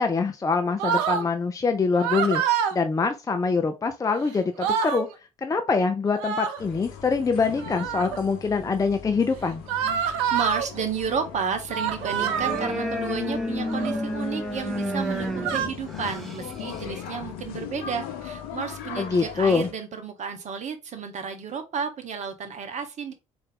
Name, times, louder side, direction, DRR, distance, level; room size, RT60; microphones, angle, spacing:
voice 1, 0.0-5.1 5.4-9.6 19.0-19.7, left 4 dB, 20° left, 0.5 m, -24 dB
sound 1, 0.8-1.3 1.9-2.8 4.1-4.2 4.4-5.0 6.1-6.6 7.6-8.2 9.7-10.7 11.7-12.7 13.6-14.0 14.9-15.7, right 8 dB, 75° right, 0.5 m, -27 dB
sound 2, 6.6-19.7, left 8 dB, 70° left, 0.6 m, -40 dB
voice 2, 9.9-23.1, right 6 dB, 45° right, 0.9 m, -32 dB
sound 3, 12.0-17.2, equal, ahead, 1.0 m, -31 dB
3.9 x 2.6 x 3.5 m
hypercardioid pair, 50°, 16 cm